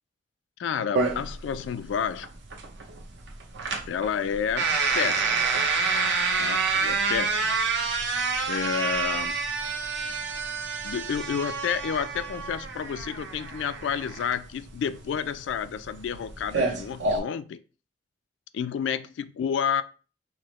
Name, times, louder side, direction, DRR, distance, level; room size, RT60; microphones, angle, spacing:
voice 1, 0.6-2.3 3.9-5.5 6.4-7.6 8.5-9.4 10.8-17.6 18.5-19.8, left 7 dB, 75° left, 0.3 m, -30 dB
sound 1, 0.9-17.2, right 4 dB, 70° right, 0.7 m, -28 dB
4.8 x 2.0 x 3.0 m
head